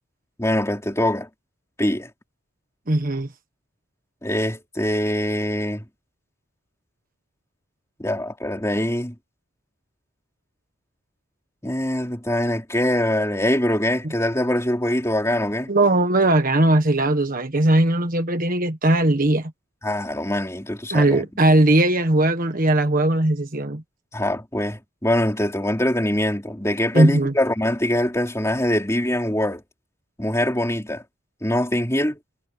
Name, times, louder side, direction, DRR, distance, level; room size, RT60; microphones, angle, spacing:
voice 1, 0.4-1.3 1.8-2.1 4.2-5.8 8.0-9.2 11.6-15.7 19.8-21.3 24.1-29.6 30.2-31.0 31.4-32.2, left 1 dB, 15° left, 3.7 m, -23 dB
voice 2, 2.9-3.3 15.7-19.5 20.9-23.8 26.9-27.3, right 1 dB, 40° right, 1.5 m, -19 dB
head